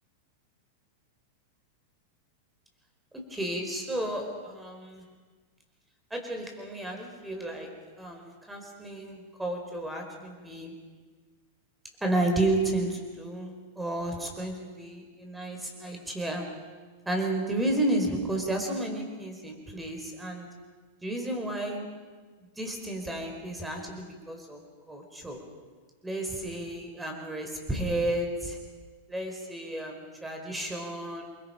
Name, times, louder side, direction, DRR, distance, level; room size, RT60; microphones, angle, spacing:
voice 1, 3.1-5.0 6.1-10.8 12.0-16.6 17.0-20.5 21.0-22.0 22.6-24.6 24.9-25.4 26.0-28.6 29.1-31.3, right 1 dB, 5° right, 3 dB, 4.8 m, -32 dB
29.0 x 23.5 x 5.2 m, 1.4 s
figure-of-eight pair, 95°, 0 cm